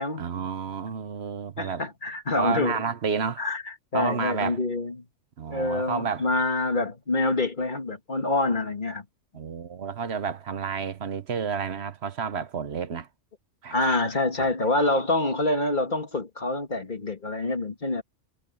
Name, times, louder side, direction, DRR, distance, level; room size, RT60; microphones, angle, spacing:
voice 1, 0.2-1.9 2.3-3.4 3.9-4.6 5.4-6.3 9.3-13.1 13.6-14.0 14.4-14.5, right 6 dB, 60° right, 1.2 m, -30 dB
voice 2, 1.6-2.8 3.4-3.6 3.9-5.0 5.5-9.0 13.7-18.0, left 2 dB, 40° left, 2.0 m, -26 dB
omnidirectional pair, 1.3 m